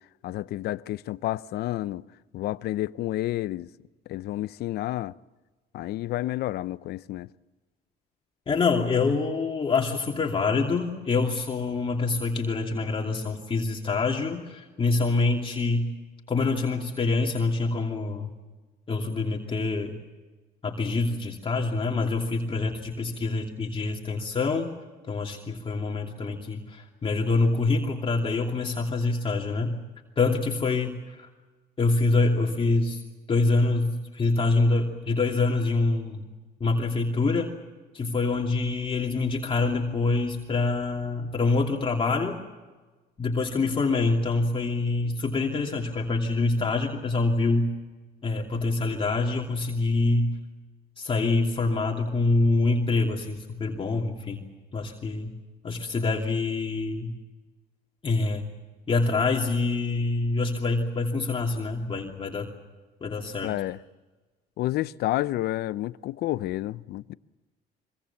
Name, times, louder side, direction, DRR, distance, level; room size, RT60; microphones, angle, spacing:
voice 1, 0.2-2.0 2.3-3.7 4.1-5.2 5.7-7.3 63.4-63.8 64.6-67.1, left 15 dB, 70° left, 0.7 m, -30 dB
voice 2, 8.5-15.9 16.3-18.3 18.9-19.9 20.6-24.7 25.1-29.8 30.2-31.3 31.8-33.0 33.3-36.2 36.6-37.6 37.9-42.4 43.2-47.7 48.2-50.4 51.0-54.4 54.7-55.3 55.6-57.1 58.0-58.4 58.9-62.5 63.0-63.5, left 3 dB, 30° left, 2.7 m, -25 dB
25.0 x 24.0 x 7.2 m
cardioid pair, 110°, 17 cm